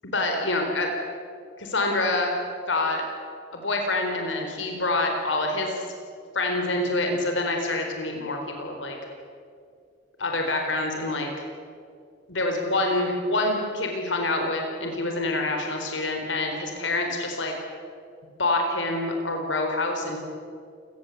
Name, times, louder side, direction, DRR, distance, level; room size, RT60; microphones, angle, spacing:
voice 1, 0.0-0.9 1.6-2.4 2.7-3.0 3.5-5.8 6.3-9.0 10.2-11.3 12.3-17.5 18.4-20.2, left 2 dB, 85° left, 3 dB, 4.2 m, -26 dB
29.0 x 19.0 x 8.4 m, 2.2 s
head